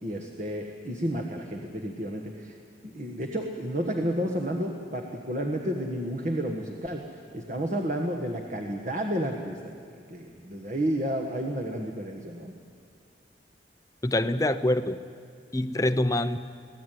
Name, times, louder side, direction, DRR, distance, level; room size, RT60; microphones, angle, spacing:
voice 1, 0.0-2.6 2.9-7.0 7.3-12.5, equal, 40° right, 3 dB, 1.5 m, -31 dB
voice 2, 14.0-15.0 15.5-16.4, left 1 dB, 20° left, 10 dB, 0.7 m, -25 dB
24.0 x 17.5 x 9.3 m, 2.2 s
head